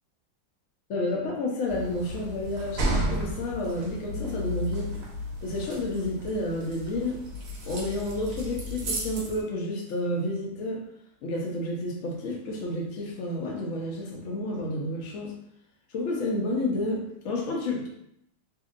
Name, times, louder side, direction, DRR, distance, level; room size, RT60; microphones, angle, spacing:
voice 1, 0.9-4.9 5.4-7.2 7.6-10.8 11.2-15.3 15.9-17.9, left 1 dB, 70° left, -1 dB, 0.7 m, -30 dB
sound 1, 1.7-9.4, equal, 65° right, 0.8 m, -33 dB
2.8 x 2.7 x 2.4 m, 0.76 s
omnidirectional pair, 2.1 m